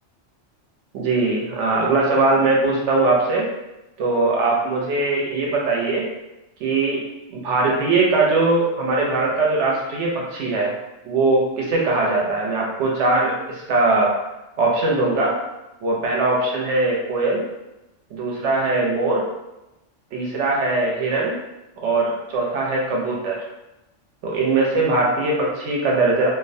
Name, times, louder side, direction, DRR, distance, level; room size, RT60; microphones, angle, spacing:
voice 1, 0.9-3.5 4.0-6.0 6.6-7.0 7.3-10.7 11.0-14.1 14.6-15.3 15.8-17.4 18.1-19.2 20.1-21.3 21.8-23.4 24.2-26.3, right 3 dB, 70° right, -2 dB, 1.0 m, -20 dB
2.5 x 2.1 x 2.6 m, 0.96 s
omnidirectional pair, 1.3 m